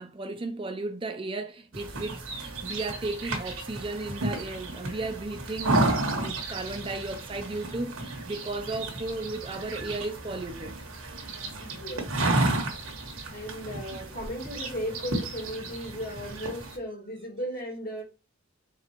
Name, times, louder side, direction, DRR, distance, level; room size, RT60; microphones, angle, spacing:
voice 1, 0.0-10.7, right 2 dB, 25° right, 0.5 m, -35 dB
sound 1, 1.7-16.8, right 2 dB, 80° right, 1.2 m, -32 dB
voice 2, 11.6-12.4 13.3-18.0, equal, 45° left, 1.7 m, -36 dB
4.1 x 3.7 x 2.9 m
head